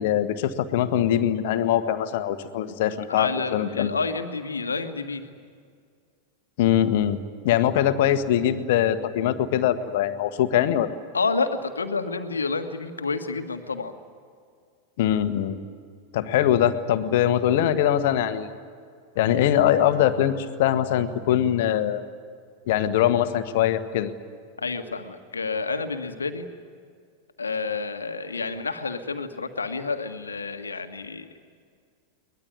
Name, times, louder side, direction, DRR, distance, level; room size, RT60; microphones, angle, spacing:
voice 1, 0.0-3.9 6.6-7.2 7.4-10.9 15.0-15.6 16.1-18.5 19.2-22.0 22.7-24.1, left 11 dB, 50° left, 10 dB, 1.5 m, -22 dB
voice 2, 3.1-5.2 11.1-13.9 24.6-26.5 27.4-31.3, left 4 dB, 75° left, 8 dB, 1.7 m, -29 dB
23.0 x 20.0 x 9.6 m, 2.1 s
figure-of-eight pair, 90°, 0 cm